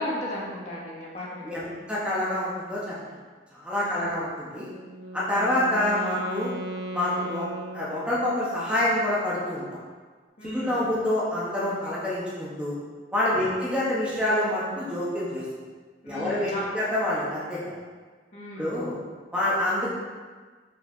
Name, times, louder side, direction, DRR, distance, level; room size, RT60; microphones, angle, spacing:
voice 1, 0.0-1.7 3.8-4.1 10.4-10.8 13.3-13.5 16.0-16.6 18.3-18.8, left 1 dB, 40° left, -6 dB, 2.0 m, -35 dB
voice 2, 1.4-2.9 3.5-4.7 5.1-6.5 6.9-7.5 7.7-9.6 10.4-12.7 13.1-15.4 16.1-17.6 18.6-19.0 19.3-19.9, left 1 dB, 5° right, -8 dB, 1.8 m, -27 dB
Wind instrument woodwind instrument, 4.6-8.5, right 1 dB, 65° right, 0.9 m, -37 dB
6.4 x 5.0 x 6.0 m, 1.4 s
head